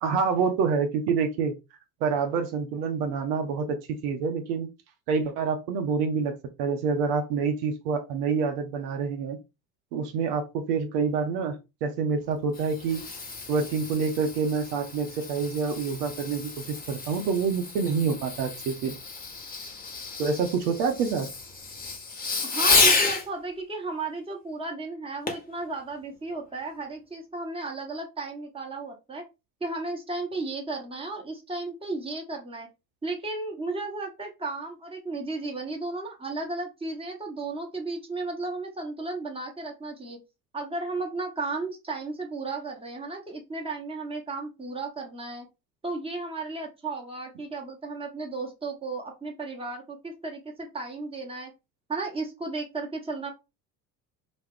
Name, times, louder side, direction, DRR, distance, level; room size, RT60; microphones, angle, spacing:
voice 1, 0.0-1.5 2.0-3.8 4.0-4.7 5.1-9.4 9.9-13.0 13.5-18.9 20.2-21.3, right 5 dB, 70° right, 6 dB, 0.7 m, -27 dB
Fireworks, 12.3-23.3 25.3-25.5 26.1-26.2, left 4 dB, 20° left, 0.7 m, -30 dB
voice 2, 22.4-29.2 29.6-32.7 33.0-40.2 40.5-45.5 45.8-51.5 51.9-53.3, right 3 dB, 10° right, 1 dB, 0.9 m, -34 dB
2.3 x 2.0 x 3.5 m, 0.25 s
hypercardioid pair, 65°, 48 cm